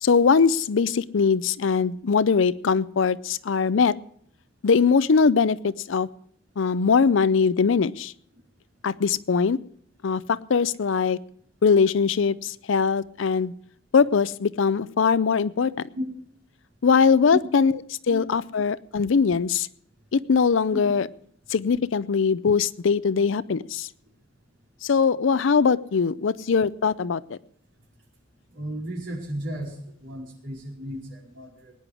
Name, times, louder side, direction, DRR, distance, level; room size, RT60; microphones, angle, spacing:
voice 1, 0.0-3.9 4.6-6.1 6.6-8.1 8.8-9.6 10.0-11.2 11.6-13.5 13.9-15.7 16.8-17.7 18.1-19.7 20.1-21.1 21.5-23.9 24.8-27.4, left 5 dB, 70° left, 18 dB, 0.5 m, -21 dB
voice 2, 28.5-31.7, equal, 70° right, -2 dB, 4.7 m, -34 dB
20.0 x 10.0 x 4.8 m, 0.63 s
head